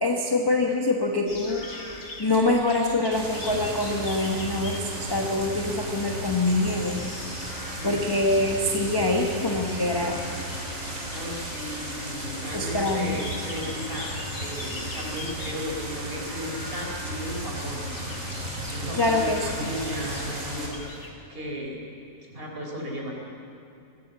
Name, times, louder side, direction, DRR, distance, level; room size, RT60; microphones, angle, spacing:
voice 1, 0.0-1.9 2.2-7.0 7.8-10.2 10.8-11.0 12.5-13.2 18.9-19.7, left 2 dB, 15° left, 1 dB, 1.1 m, -25 dB
sound 1, 1.3-21.1, left 2 dB, 55° left, 2.6 m, -42 dB
sound 2, 3.1-20.7, right 1 dB, 50° right, 4.0 m, -35 dB
voice 2, 7.6-8.1 11.1-14.1 14.4-18.0 18.6-21.0 21.3-21.8 22.3-23.1, equal, 30° right, -1 dB, 4.2 m, -35 dB
21.5 x 14.5 x 8.2 m, 2.7 s
omnidirectional pair, 1.8 m